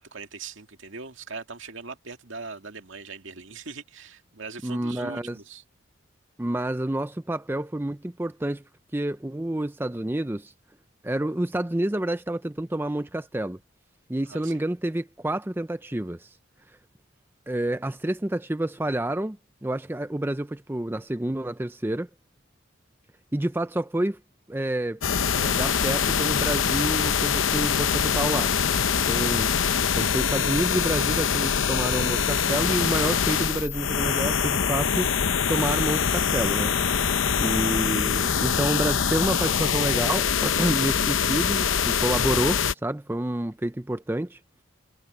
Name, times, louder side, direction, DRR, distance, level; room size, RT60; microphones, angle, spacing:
voice 1, 0.0-5.6 14.3-14.6 37.3-37.7, right 4 dB, 75° right, 2.1 m, -41 dB
voice 2, 4.6-5.4 6.4-8.6 8.9-10.5 11.0-13.6 14.1-16.3 17.5-22.1 23.3-24.2 24.5-25.0 25.3-28.5 29.0-29.5 29.9-35.1 35.5-36.8 37.4-44.4, right 1 dB, 10° right, 0.4 m, -29 dB
sound 1, 25.0-42.7, left 7 dB, 80° left, 0.8 m, -24 dB
head